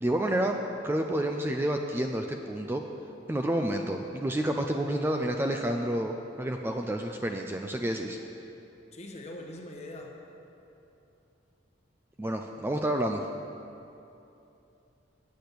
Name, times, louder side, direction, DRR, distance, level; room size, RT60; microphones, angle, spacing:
voice 1, 0.0-2.8 3.3-8.2 12.2-13.2, right 1 dB, 10° right, 3 dB, 0.3 m, -29 dB
voice 2, 8.9-10.2, left 1 dB, 35° left, 2 dB, 1.0 m, -42 dB
8.4 x 6.1 x 8.2 m, 2.8 s
head